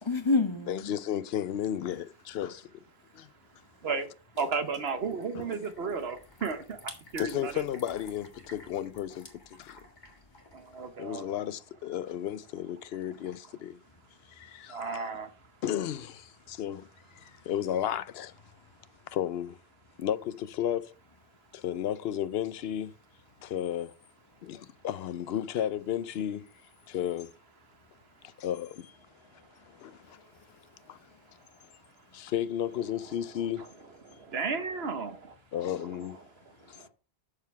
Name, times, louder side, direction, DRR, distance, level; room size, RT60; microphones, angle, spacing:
voice 1, 0.0-0.9 29.3-29.5 29.8-30.4 30.8-31.0, left 3 dB, 30° left, 0.9 m, -30 dB
voice 2, 0.7-2.9 3.1-3.3 5.3-5.4 7.2-9.8 11.0-13.8 14.3-15.1 15.6-16.9 17.1-18.3 19.1-19.6 20.0-20.9 21.5-22.9 23.4-23.9 24.4-26.4 26.9-27.3 28.2-29.0 29.7-30.2 30.9-31.0 32.1-33.7 35.5-36.2 36.7-36.8, left 10 dB, 70° left, 0.8 m, -33 dB
sound 1, 4.3-10.9, left 2 dB, 45° left, 2.0 m, -51 dB
voice 3, 4.4-7.7 10.5-11.4 14.7-15.3 32.8-33.9 34.3-35.2 35.6-36.2, right 5 dB, 70° right, 1.3 m, -34 dB
7.4 x 6.7 x 4.6 m
omnidirectional pair, 1.1 m